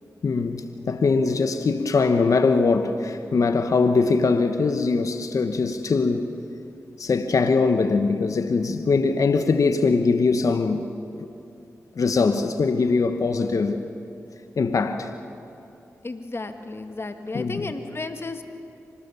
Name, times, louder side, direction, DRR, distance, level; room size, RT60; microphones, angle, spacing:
voice 1, 0.2-6.3 7.0-10.9 11.9-13.8 14.6-15.1 17.3-17.7, left 4 dB, 65° left, 8 dB, 1.2 m, -22 dB
voice 2, 16.0-18.4, left 3 dB, 45° left, 7 dB, 1.9 m, -33 dB
25.5 x 19.5 x 7.0 m, 2.7 s
cardioid pair, 45°, 6 cm